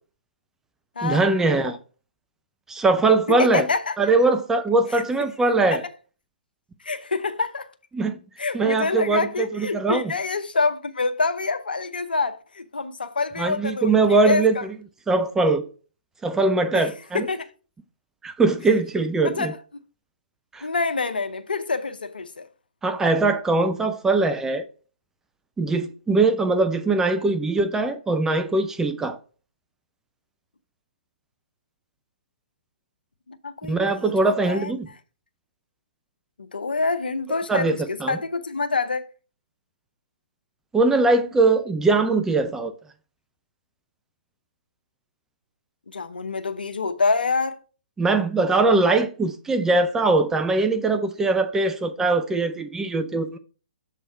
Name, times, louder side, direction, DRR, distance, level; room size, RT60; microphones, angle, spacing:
voice 1, 1.0-1.8 2.7-3.7 4.0-5.8 7.9-8.2 8.5-10.1 13.4-14.6 15.1-15.6 16.2-17.3 18.2-19.5 20.5-20.7 22.8-24.6 25.6-29.2 33.6-34.9 37.5-38.2 40.7-42.7 48.0-53.4, right 3 dB, 10° right, 0.5 m, -21 dB
voice 2, 3.3-4.0 4.9-5.0 6.8-7.7 8.4-13.9 14.2-14.6 16.7-16.9 17.1-17.5 19.2-19.6 20.6-22.5 33.3-34.7 36.4-39.0 45.9-47.6, left 4 dB, 80° left, 0.8 m, -26 dB
7.4 x 3.4 x 4.3 m
figure-of-eight pair, 130°, 5 cm